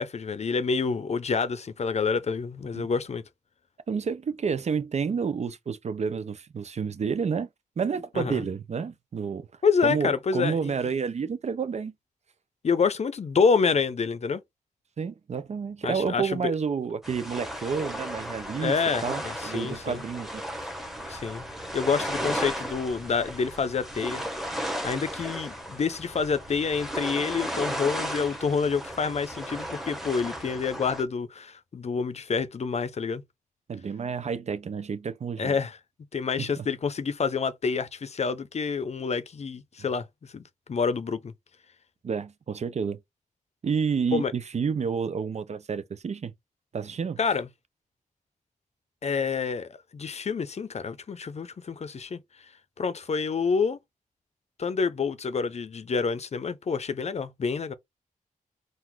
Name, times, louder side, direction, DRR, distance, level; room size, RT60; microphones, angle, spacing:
voice 1, 0.0-3.2 8.2-8.5 9.6-10.9 12.6-14.4 15.8-16.5 18.6-20.0 21.1-21.4 21.7-24.2 24.8-33.2 35.4-35.8 36.1-41.3 44.1-44.3 47.2-47.5 49.0-52.2 52.8-53.8 54.6-57.7, left 5 dB, 50° left, 0.6 m, -28 dB
voice 2, 3.9-7.5 7.8-9.5 9.8-11.9 15.0-18.7 19.0-20.7 33.7-35.6 36.4-36.7 42.0-43.0 43.6-46.3 46.7-47.2, right 6 dB, 50° right, 0.5 m, -30 dB
sound 1, 17.0-31.0, equal, ahead, 1.0 m, -35 dB
3.9 x 2.5 x 4.5 m
wide cardioid pair, 125°, 14 cm